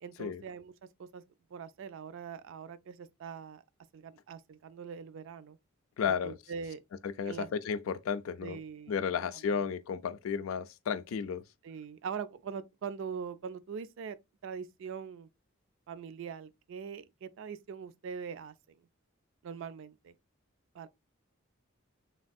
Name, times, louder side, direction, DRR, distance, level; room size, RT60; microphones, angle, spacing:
voice 1, 0.0-0.7 1.0-1.2 1.5-3.6 3.9-5.6 6.1-6.8 7.3-7.5 8.4-9.0 9.5-9.7 11.6-14.2 14.4-15.3 15.9-18.8 19.4-20.1 20.7-20.9, right 6 dB, 65° right, 0.3 m, -42 dB
voice 2, 6.0-6.4 7.0-8.6 8.9-11.4, left 6 dB, 75° left, 0.3 m, -33 dB
3.4 x 2.6 x 2.3 m
head